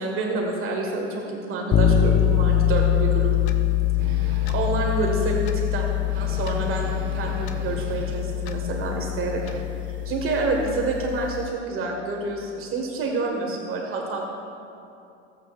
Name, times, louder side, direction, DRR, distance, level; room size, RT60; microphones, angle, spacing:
voice 1, 0.0-3.4 4.1-5.4 5.7-5.9 6.1-9.4 10.0-14.2, right 3 dB, 40° right, 0 dB, 1.6 m, -28 dB
sound 1, 1.7-11.5, left 10 dB, 25° left, 0.5 m, -24 dB
Clock, 3.5-3.6 4.5-4.6 5.5-5.6 6.5-6.6 7.5-7.6 8.5-8.6 9.5-9.6, left 10 dB, 60° left, 1.0 m, -43 dB
sound 2, 4.0-4.9 5.4-5.5 5.7-5.8 6.0-8.4 8.7-9.6, right 4 dB, 70° right, 1.1 m, -39 dB
18.5 x 8.3 x 2.4 m, 2.6 s
supercardioid pair, 110°, 33 cm